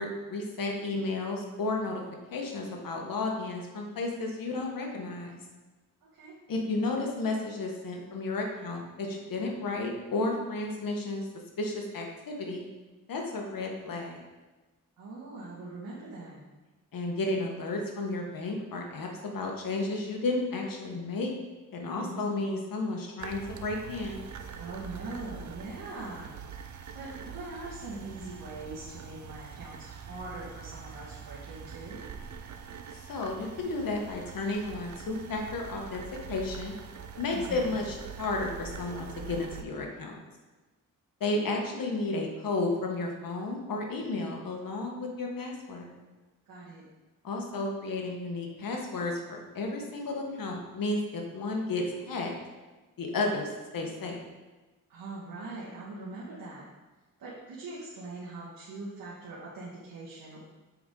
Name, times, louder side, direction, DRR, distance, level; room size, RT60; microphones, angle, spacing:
voice 1, 0.0-2.0 2.3-5.4 6.5-11.3 11.6-12.7 13.1-14.2 16.9-21.3 21.7-24.2 32.9-36.0 36.3-36.7 37.2-40.2 41.2-45.9 47.2-52.3 53.0-54.2, left 2 dB, 75° left, 1 dB, 1.3 m, -32 dB
voice 2, 15.0-16.4 22.0-22.2 24.6-26.4 26.9-32.0 37.3-37.7 46.5-46.8 54.9-56.6 57.2-60.4, right 2 dB, 80° right, -9 dB, 1.7 m, -42 dB
sound 1, 23.2-39.6, right 7 dB, 55° right, 0.6 m, -44 dB
7.0 x 4.9 x 3.8 m, 1.2 s
cardioid pair, 95°, 34 cm